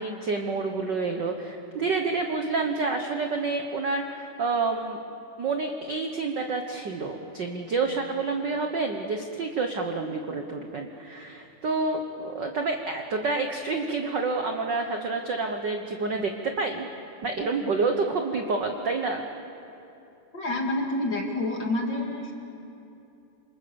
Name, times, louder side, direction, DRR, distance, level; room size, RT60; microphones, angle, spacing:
voice 1, 0.0-5.0 5.4-16.9 17.2-19.3, right 3 dB, 60° right, 4 dB, 1.1 m, -28 dB
voice 2, 20.3-22.3, left 2 dB, 35° left, 1 dB, 2.9 m, -28 dB
27.0 x 27.0 x 7.1 m, 2.8 s
omnidirectional pair, 3.7 m